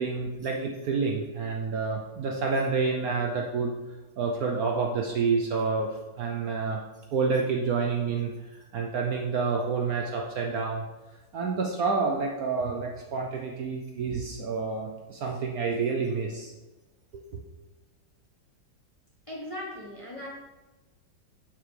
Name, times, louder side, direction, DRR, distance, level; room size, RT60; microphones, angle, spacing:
voice 1, 0.0-3.7 4.2-6.8 7.1-8.3 8.7-10.8 11.3-16.5 17.1-17.4, right 4 dB, 65° right, 1 dB, 1.0 m, -28 dB
voice 2, 19.3-20.3, left 1 dB, 20° left, -4 dB, 1.0 m, -38 dB
6.9 x 6.6 x 3.3 m, 1.1 s
omnidirectional pair, 2.0 m